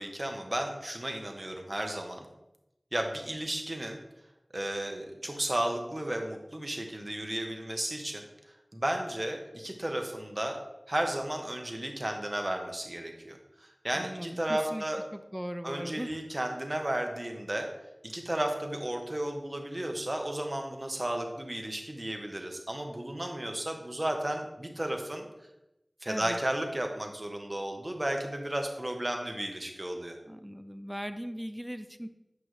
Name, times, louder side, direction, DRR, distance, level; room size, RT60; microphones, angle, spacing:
voice 1, 0.0-2.3 2.9-4.0 4.5-8.2 8.7-10.6 10.9-15.0 15.6-17.7 18.0-25.3 26.0-30.2, right 1 dB, 35° right, 3 dB, 1.0 m, -33 dB
voice 2, 13.9-14.8 15.1-16.1 26.1-26.4 30.3-32.1, equal, 10° right, 10 dB, 0.4 m, -38 dB
8.5 x 5.3 x 3.2 m, 0.94 s
wide cardioid pair, 50°, 0 cm